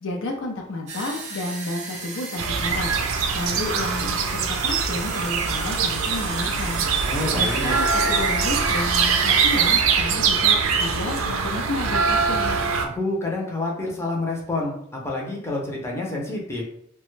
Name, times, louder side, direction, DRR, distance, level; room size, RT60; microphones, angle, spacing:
voice 1, 0.0-2.9 3.3-6.9 7.3-12.6, left 2 dB, 70° left, 1 dB, 0.5 m, -31 dB
sound 1, 0.9-9.8, right 4 dB, 35° right, 0.6 m, -35 dB
sound 2, 2.4-12.9, right 5 dB, 90° right, 0.4 m, -23 dB
voice 2, 7.1-7.7 12.9-14.7 15.0-16.6, left 2 dB, 15° left, -2 dB, 0.6 m, -28 dB
2.9 x 2.2 x 3.1 m, 0.68 s
head